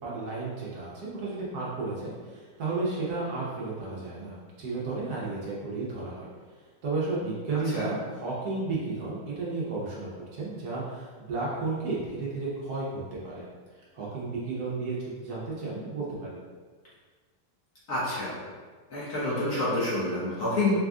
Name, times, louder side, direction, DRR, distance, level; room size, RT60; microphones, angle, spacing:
voice 1, 0.0-6.3 6.8-13.4 13.9-16.4, right 3 dB, 65° right, -6 dB, 1.2 m, -33 dB
voice 2, 17.9-18.4 18.9-20.8, left 2 dB, 50° left, -9 dB, 1.3 m, -28 dB
4.1 x 2.4 x 3.5 m, 1.5 s
omnidirectional pair, 2.0 m